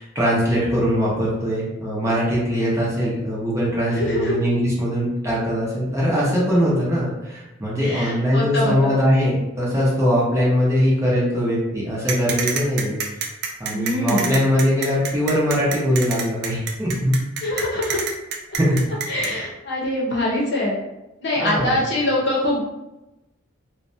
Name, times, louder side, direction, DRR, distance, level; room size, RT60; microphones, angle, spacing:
voice 1, 0.0-13.0 13.6-17.1 18.6-18.8 19.2-19.4 21.4-21.8, equal, 15° right, -7 dB, 0.6 m, -21 dB
voice 2, 3.9-4.3 7.8-8.9 13.7-14.4 17.4-18.0 19.1-20.7 21.2-22.6, left 1 dB, 55° left, -4 dB, 0.7 m, -23 dB
sound 1, 12.1-19.3, right 6 dB, 55° right, 0.3 m, -27 dB
2.5 x 2.2 x 2.6 m, 0.98 s
head